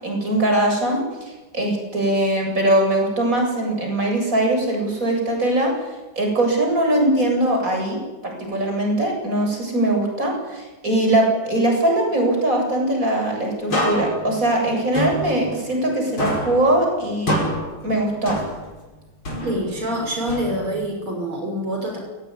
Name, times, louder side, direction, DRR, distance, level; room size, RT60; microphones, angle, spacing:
voice 1, 0.0-5.7 6.2-17.4 17.8-18.4, right 1 dB, 40° right, 1 dB, 8.7 m, -21 dB
sound 1, 13.7-15.9 16.2-18.9 19.3-20.9, equal, 75° left, 7.0 m, -28 dB
voice 2, 19.4-22.0, equal, 85° right, 1 dB, 7.1 m, -26 dB
29.5 x 18.5 x 9.9 m, 1.1 s
omnidirectional pair, 2.3 m